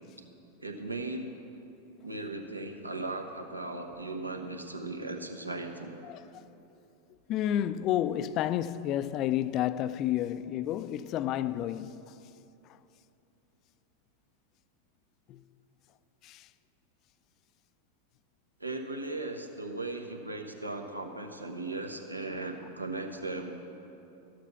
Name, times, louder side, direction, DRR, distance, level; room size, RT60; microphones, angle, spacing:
voice 1, 0.6-1.3 2.0-6.0 18.6-23.8, right 2 dB, 85° right, 0.9 m, -37 dB
voice 2, 6.0-6.5 7.3-12.2 12.7-12.8 15.3-15.4 16.2-16.5, left 11 dB, 35° left, 0.3 m, -31 dB
13.5 x 7.7 x 5.9 m
figure-of-eight pair, 90°, 0 cm